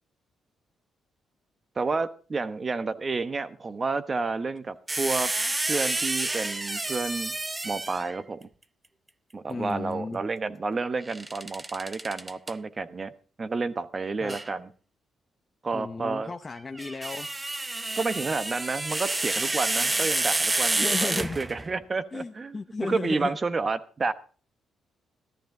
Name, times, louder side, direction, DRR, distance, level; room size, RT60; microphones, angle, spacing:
voice 1, 1.8-5.3 5.7-7.4 7.6-8.5 9.3-13.1 13.4-14.7 15.6-16.3 18.0-24.1, right 4 dB, 35° right, 13 dB, 1.1 m, -30 dB
sound 1, 4.9-8.2 11.1-12.5 14.3-14.5 16.6-21.7, right 2 dB, 20° right, 0.7 m, -29 dB
voice 2, 9.5-10.2 14.2-14.4 15.7-17.6 20.8-21.4 22.1-23.4, left 3 dB, 30° left, 5 dB, 0.8 m, -34 dB
15.0 x 13.0 x 3.8 m, 0.39 s
cardioid pair, 80°, 0 cm